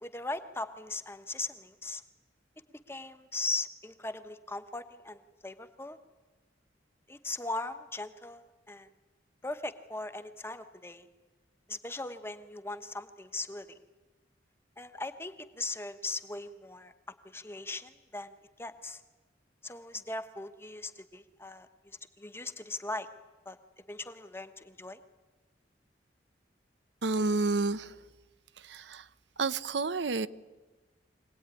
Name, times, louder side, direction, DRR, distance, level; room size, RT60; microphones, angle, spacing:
voice 1, 0.0-2.0 2.9-6.0 7.1-8.9 9.4-11.1 11.7-13.8 14.8-16.9 17.2-19.0 19.6-23.1 23.4-23.6 23.9-25.0, left 2 dB, 15° left, 1.0 m, -39 dB
voice 2, 27.0-27.9 28.7-29.0 29.4-30.3, right 3 dB, 75° right, 0.7 m, -29 dB
24.0 x 18.0 x 9.8 m
head